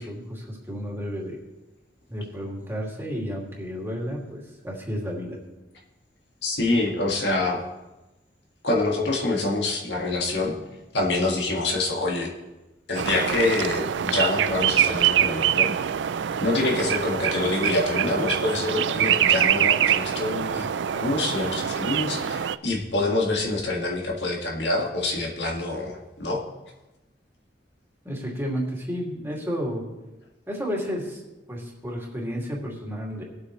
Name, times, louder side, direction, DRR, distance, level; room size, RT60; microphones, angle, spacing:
voice 1, 0.0-1.4 2.1-5.4 28.0-29.8 30.5-31.2 31.5-33.2, equal, 15° right, -2 dB, 2.5 m, -32 dB
voice 2, 6.4-7.6 8.6-10.6 10.9-12.3 12.9-15.8 16.4-20.7 20.9-26.4, left 2 dB, 70° left, -1 dB, 2.0 m, -26 dB
sound 1, 12.9-22.6, right 9 dB, 80° right, 0.4 m, -24 dB
20.5 x 8.3 x 3.2 m, 1.1 s
head